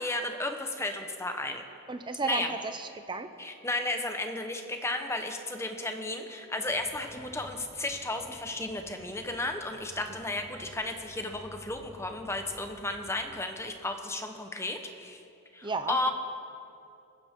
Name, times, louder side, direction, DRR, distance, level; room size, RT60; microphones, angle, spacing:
voice 1, 0.0-1.6 2.2-2.5 3.4-15.2 15.5-16.1, left 2 dB, 10° left, 5 dB, 0.9 m, -33 dB
voice 2, 1.9-3.3 15.6-16.1, right 4 dB, 20° right, 8 dB, 0.7 m, -34 dB
sound 1, 6.6-13.4, equal, 35° left, 4.7 m, -53 dB
21.0 x 15.5 x 3.7 m, 2.6 s
head